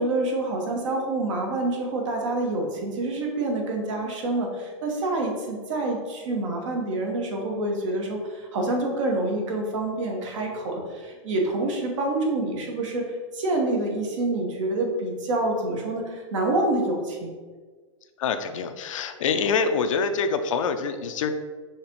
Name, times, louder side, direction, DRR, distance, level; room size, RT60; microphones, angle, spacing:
voice 1, 0.0-17.3, right 2 dB, 65° right, 1 dB, 1.1 m, -27 dB
voice 2, 18.2-21.3, left 5 dB, 75° left, 8 dB, 0.5 m, -25 dB
5.7 x 3.0 x 3.0 m, 1.5 s
hypercardioid pair, 130°, 17 cm